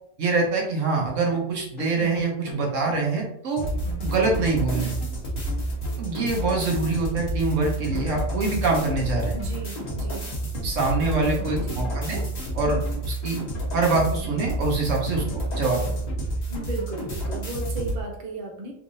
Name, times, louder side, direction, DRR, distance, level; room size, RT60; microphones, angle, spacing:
voice 1, 0.2-3.6 4.0-4.9 6.0-9.4 10.6-12.2 12.5-13.4 13.7-15.8, right 3 dB, 75° right, 0 dB, 1.3 m, -25 dB
sound 1, 1.3-7.1 7.3-7.4 7.8-10.7 11.0-14.8 15.2-17.9, left 2 dB, 85° left, 1.2 m, -41 dB
sound 2, 3.6-18.0, right 1 dB, 35° left, 1.1 m, -30 dB
voice 2, 9.3-10.3 11.1-11.9 16.5-18.7, right 3 dB, 45° right, 0 dB, 0.8 m, -35 dB
3.5 x 3.3 x 2.7 m, 0.70 s
omnidirectional pair, 1.3 m